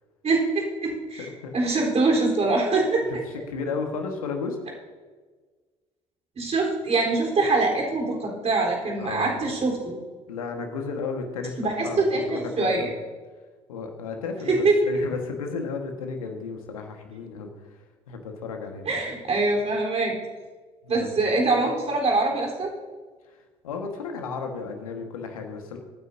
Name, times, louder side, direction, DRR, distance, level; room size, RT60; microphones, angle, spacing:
voice 1, 0.2-1.3 1.5-3.2 6.4-10.0 11.6-12.9 14.5-14.8 18.9-20.2 20.9-22.7, right 3 dB, 40° right, -1 dB, 4.1 m, -24 dB
voice 2, 1.2-1.6 3.5-4.6 9.0-9.4 10.3-13.0 13.7-17.8 18.1-18.8 20.8-21.1 23.3-23.4 23.6-25.8, left 4 dB, 80° left, 4 dB, 1.7 m, -33 dB
23.0 x 9.6 x 2.8 m, 1.4 s
figure-of-eight pair, 55°, 18 cm